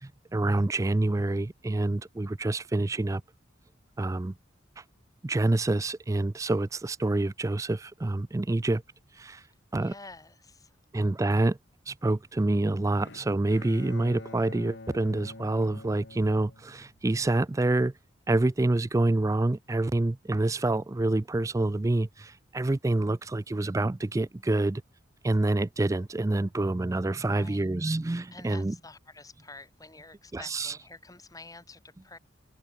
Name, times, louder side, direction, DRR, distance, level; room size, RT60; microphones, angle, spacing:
voice 1, 0.0-3.2 4.0-4.3 5.2-8.8 9.2-9.4 9.7-9.9 10.9-11.6 11.9-17.9 18.3-24.8 25.2-28.8 30.3-30.8, right 2 dB, 15° right, 0.4 m, -27 dB
voice 2, 9.8-10.8 27.2-28.0 28.3-32.2, left 3 dB, 20° left, 4.1 m, -49 dB
Bowed string instrument, 13.0-17.2, left 2 dB, 60° left, 1.8 m, -46 dB
head